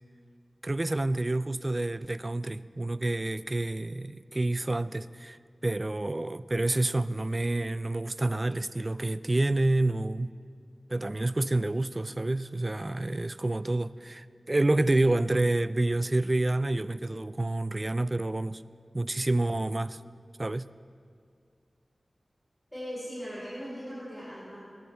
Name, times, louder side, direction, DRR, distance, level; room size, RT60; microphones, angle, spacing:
voice 1, 0.6-5.4 5.6-10.3 10.9-18.6 18.9-20.0 20.4-20.7, right 2 dB, 30° right, 0.3 m, -28 dB
voice 2, 22.7-24.6, equal, 10° left, 4.0 m, -39 dB
19.5 x 10.5 x 3.4 m
wide cardioid pair, 70°, 0 cm